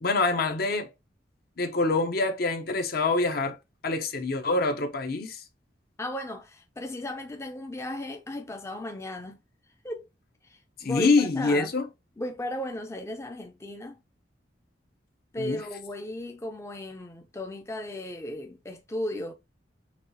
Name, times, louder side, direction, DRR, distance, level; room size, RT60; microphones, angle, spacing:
voice 1, 0.0-0.9 1.6-3.6 3.8-5.4 10.8-11.8 15.4-15.6, left 3 dB, 60° left, 0.8 m, -25 dB
voice 2, 6.0-9.4 9.8-10.1 10.4-11.7 12.2-14.0 15.3-19.3, left 1 dB, 15° left, 0.5 m, -36 dB
5.8 x 2.4 x 2.7 m
head